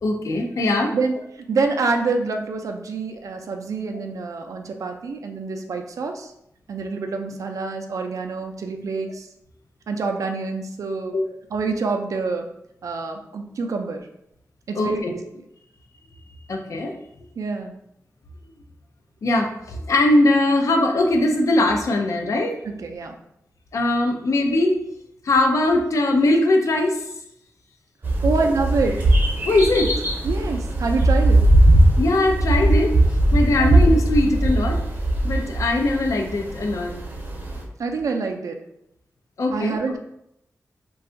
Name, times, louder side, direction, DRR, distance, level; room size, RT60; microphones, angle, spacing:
voice 1, 0.0-0.9 3.9-4.0 11.1-11.2 14.8-15.1 16.5-16.9 19.2-22.6 23.7-24.8 25.2-27.0 29.4-29.9 32.0-32.9 33.3-34.8 35.2-36.9 39.4-39.8, left 2 dB, 70° left, 3 dB, 0.5 m, -20 dB
voice 2, 0.9-6.3 6.7-9.3 9.9-11.2 11.5-12.5 12.8-14.1 14.7-15.4 17.4-17.7 22.6-23.2 28.2-29.1 30.2-31.5 33.6-33.7 37.8-38.6 39.5-40.0, right 4 dB, 75° right, 4 dB, 0.4 m, -26 dB
sound 1, 28.0-37.6, right 1 dB, 35° right, 0.6 m, -19 dB
2.5 x 2.3 x 3.7 m, 0.79 s
wide cardioid pair, 125°, 6 cm